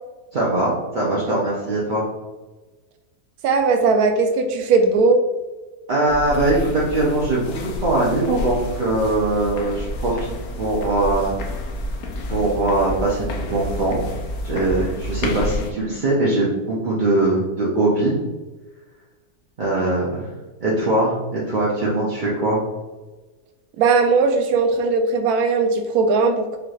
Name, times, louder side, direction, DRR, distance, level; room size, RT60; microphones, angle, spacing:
voice 1, 0.3-2.1 5.9-7.5 7.8-10.3 10.6-11.4 12.3-14.0 14.4-18.1 19.6-20.3 20.6-22.6, right 2 dB, 50° right, -6 dB, 0.6 m, -21 dB
voice 2, 3.4-5.2 23.8-26.6, right 4 dB, 70° right, 6 dB, 1.0 m, -18 dB
sound 1, 6.1-15.7, left 2 dB, 70° left, 1.0 m, -29 dB
4.9 x 3.1 x 2.4 m, 1.2 s
omnidirectional pair, 1.7 m